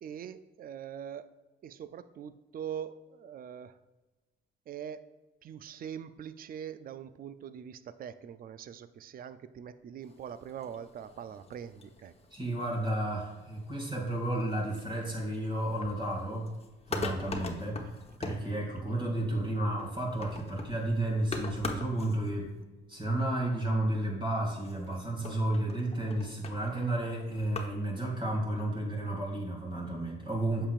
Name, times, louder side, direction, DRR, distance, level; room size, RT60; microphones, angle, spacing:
voice 1, 0.0-1.3 1.6-3.8 4.7-5.0 5.4-12.1 18.7-18.8, right 8 dB, 45° right, 13 dB, 0.4 m, -43 dB
sound 1, 10.0-22.9 24.6-27.6, left 3 dB, 30° left, 1.1 m, -44 dB
voice 2, 12.3-16.5 16.9-17.8 18.2-22.5 22.9-30.7, right 1 dB, 25° right, -2 dB, 2.4 m, -32 dB
8.8 x 6.7 x 2.5 m, 1.2 s
cardioid pair, 90°, 20 cm